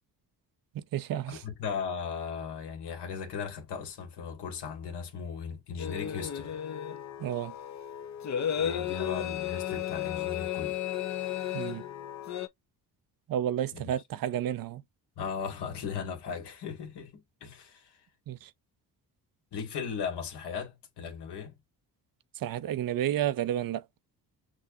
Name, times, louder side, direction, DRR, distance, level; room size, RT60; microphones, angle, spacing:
voice 1, 0.7-1.4 7.2-7.5 11.5-11.8 13.3-14.8 18.3-18.5 22.4-23.8, right 11 dB, 55° right, 0.6 m, -31 dB
voice 2, 1.3-6.6 8.6-10.8 13.7-13.9 15.2-18.0 19.5-21.6, left 6 dB, 75° left, 1.8 m, -37 dB
sound 1, 5.8-12.5, left 10 dB, 45° left, 0.7 m, -34 dB
6.1 x 2.4 x 2.7 m
cardioid pair, 80°, 41 cm